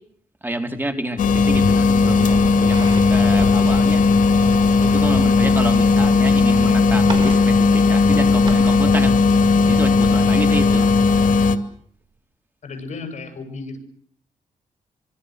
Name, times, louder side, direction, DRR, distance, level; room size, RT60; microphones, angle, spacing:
voice 1, 0.4-4.0 4.8-9.1 9.7-10.9, right 1 dB, 15° right, 6 dB, 3.7 m, -28 dB
sound 1, 1.2-11.6, left 4 dB, 75° left, 2.3 m, -16 dB
sound 2, 1.9-2.0 2.2-6.5 6.8-8.8 9.3-10.7 11.0-11.1 11.6-11.7, right 3 dB, 35° right, 6.0 m, -37 dB
voice 2, 12.6-13.8, left 3 dB, 60° left, 7 dB, 7.9 m, -33 dB
26.0 x 25.5 x 6.5 m, 0.62 s
wide cardioid pair, 125°, 14 cm